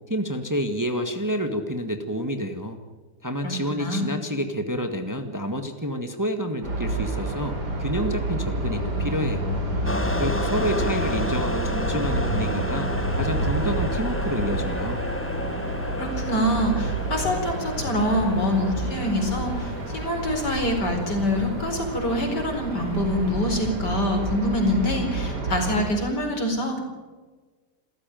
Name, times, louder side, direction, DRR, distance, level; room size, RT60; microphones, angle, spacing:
voice 1, 0.1-2.8 3.2-9.6 10.2-15.0, equal, 10° right, 6 dB, 1.6 m, -29 dB
voice 2, 3.4-4.1 16.0-26.8, equal, 70° left, 4 dB, 5.1 m, -25 dB
sound 1, 6.6-25.9, right 1 dB, 65° right, 4.8 m, -29 dB
sound 2, 9.8-21.4, left 1 dB, 10° left, 0.8 m, -32 dB
28.0 x 14.5 x 9.2 m, 1.4 s
omnidirectional pair, 1.9 m